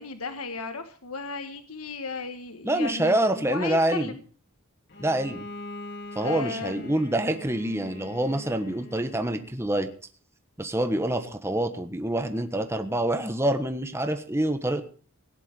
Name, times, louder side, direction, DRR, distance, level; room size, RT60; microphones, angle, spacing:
voice 1, 0.0-4.2 6.2-6.9, left 4 dB, 80° left, 8 dB, 1.6 m, -35 dB
voice 2, 2.6-4.1 5.0-5.4 6.1-9.9 10.6-14.8, right 1 dB, 10° right, 8 dB, 1.2 m, -26 dB
Bowed string instrument, 4.9-9.6, left 2 dB, 50° left, 3.1 m, -42 dB
17.5 x 11.0 x 5.4 m, 0.42 s
head